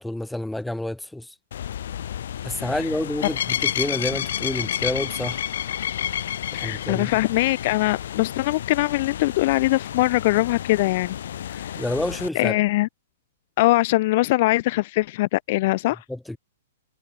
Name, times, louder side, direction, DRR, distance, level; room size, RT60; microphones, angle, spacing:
voice 1, 0.0-1.3 2.4-5.5 6.5-7.2 11.5-12.6 16.1-16.4, left 1 dB, 5° left, 3.3 m, -29 dB
sound 1, 1.5-12.3, left 10 dB, 70° left, 5.3 m, -30 dB
voice 2, 6.5-11.1 11.5-11.8 12.3-12.9 13.6-16.0, left 19 dB, 50° left, 1.0 m, -22 dB
hypercardioid pair, 140°, 0 cm